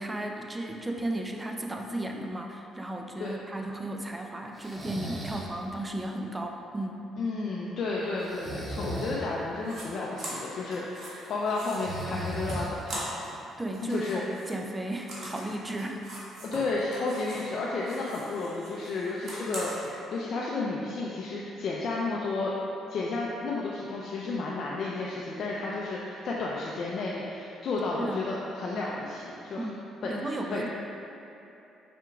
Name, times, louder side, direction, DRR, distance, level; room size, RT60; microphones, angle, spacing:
voice 1, 0.0-7.1 13.6-16.0 28.0-28.3 29.6-30.8, right 1 dB, 15° right, 2 dB, 0.4 m, -35 dB
Breathing, 4.6-5.5 8.2-9.2 11.6-13.0, equal, 35° right, 0.8 m, -36 dB
voice 2, 7.2-13.0 13.8-14.2 16.4-22.5 22.9-29.7 30.0-30.6, left 3 dB, 60° left, -5 dB, 0.5 m, -32 dB
sound 1, 9.6-9.8 10.2-13.4 13.7-17.5 17.8-19.9, right 1 dB, 55° right, 1.2 m, -41 dB
5.0 x 4.4 x 2.4 m, 3.0 s
cardioid pair, 80°, 0 cm